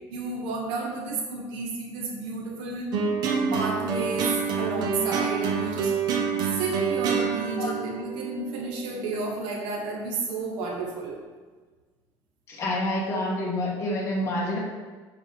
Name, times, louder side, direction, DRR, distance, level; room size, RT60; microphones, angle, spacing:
voice 1, 0.1-2.9 3.5-5.9 6.4-11.2, right 3 dB, 80° right, -1 dB, 1.3 m, -31 dB
sound 1, 2.9-9.4, right 6 dB, 55° right, 0.9 m, -27 dB
voice 2, 12.5-14.6, left 1 dB, 30° left, -3 dB, 1.4 m, -28 dB
5.5 x 4.7 x 3.9 m, 1.4 s
cardioid pair, 155°, 9 cm